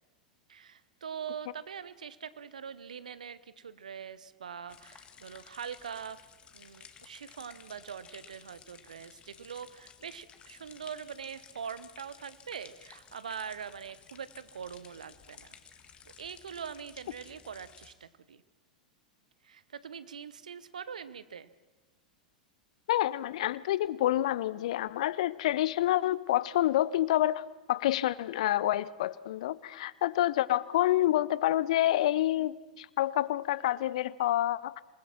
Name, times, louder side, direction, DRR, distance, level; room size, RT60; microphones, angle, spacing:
voice 1, 0.5-6.2 6.5-15.6 16.2-18.4 19.4-21.5, right 7 dB, 70° right, 15 dB, 1.0 m, -43 dB
sound 1, 4.7-17.9, left 7 dB, 25° left, 1.8 m, -55 dB
voice 2, 22.9-34.8, left 13 dB, 55° left, 20 dB, 0.6 m, -28 dB
27.0 x 20.0 x 6.0 m, 1.2 s
figure-of-eight pair, 90°, 4 cm